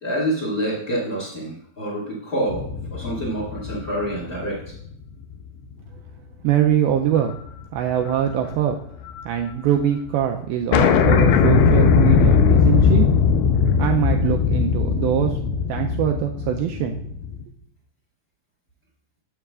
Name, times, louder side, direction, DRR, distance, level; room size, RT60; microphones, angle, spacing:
voice 1, 0.0-4.6, right 1 dB, 40° left, -6 dB, 1.3 m, -27 dB
sound 1, 2.5-5.1 5.6-5.7 7.2-7.5 7.8-9.2 9.5-9.6 9.8-9.9 10.2-10.3 10.7-17.4, left 6 dB, 80° left, 2.5 m, -19 dB
voice 2, 6.4-7.3 7.7-8.8 9.3-13.1 13.8-15.4 15.7-17.0, right 10 dB, 85° right, 3 dB, 2.1 m, -23 dB
12.0 x 7.4 x 2.4 m, 0.64 s
omnidirectional pair, 4.8 m